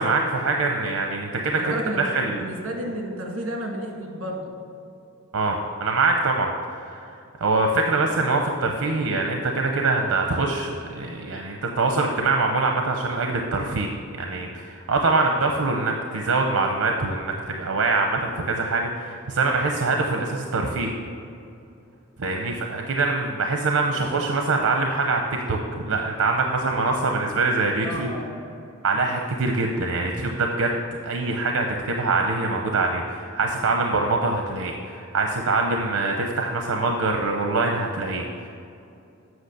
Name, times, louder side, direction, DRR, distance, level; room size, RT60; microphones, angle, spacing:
voice 1, 0.0-2.4 5.3-7.0 7.4-13.9 14.2-20.9 22.2-25.2 25.5-28.1 28.8-30.7 31.0-38.5, right 3 dB, 90° right, 2 dB, 0.7 m, -24 dB
voice 2, 1.3-2.0 2.4-4.5 27.8-28.3, right 1 dB, 65° right, 0 dB, 1.8 m, -31 dB
8.1 x 5.9 x 6.6 m, 2.6 s
head